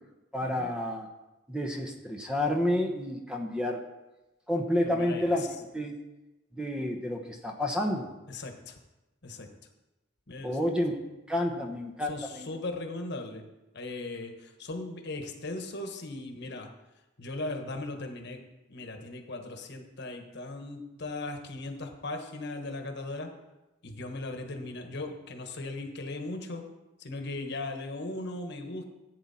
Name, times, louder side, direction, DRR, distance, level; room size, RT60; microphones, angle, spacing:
voice 1, 0.3-1.1 1.5-3.8 4.5-5.9 6.5-8.1 10.4-11.0 11.3-12.5, left 1 dB, 5° right, 2 dB, 1.0 m, -30 dB
voice 2, 4.9-5.5 8.3-8.8 9.2-9.5 10.3-10.6 11.5-11.7 12.1-13.5 13.7-16.7 17.2-18.4 18.7-23.3 23.8-26.6 27.0-28.8, left 2 dB, 55° left, 5 dB, 1.4 m, -38 dB
14.5 x 8.7 x 4.3 m, 1.0 s
head